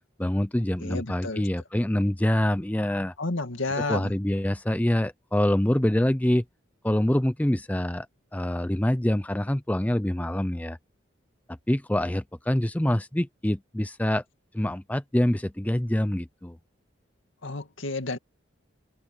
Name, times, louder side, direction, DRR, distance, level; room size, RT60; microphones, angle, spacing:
voice 1, 0.2-3.1 3.8-6.4 6.8-8.1 8.3-10.8 11.5-14.2 14.5-16.6, left 1 dB, 10° left, 0.5 m, -25 dB
voice 2, 0.8-1.5 3.2-4.1 17.4-18.2, left 2 dB, 80° left, 2.2 m, -31 dB
head